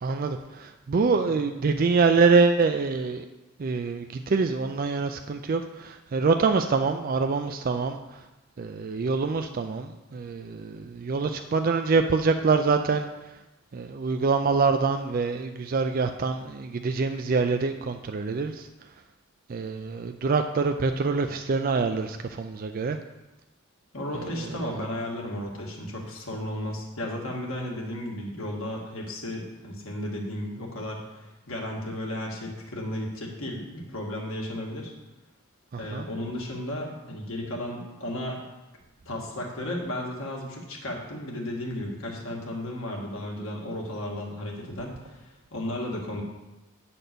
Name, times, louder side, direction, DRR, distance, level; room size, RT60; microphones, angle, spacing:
voice 1, 0.0-3.3 3.6-8.2 8.6-13.1 13.7-18.7 19.5-23.0 24.1-24.8 35.7-36.1, right 4 dB, 40° right, 6 dB, 0.3 m, -25 dB
voice 2, 1.0-1.3 23.9-34.9 35.8-38.4 39.1-46.2, left 1 dB, 70° left, -1 dB, 1.9 m, -34 dB
8.9 x 4.2 x 6.7 m, 1.0 s
head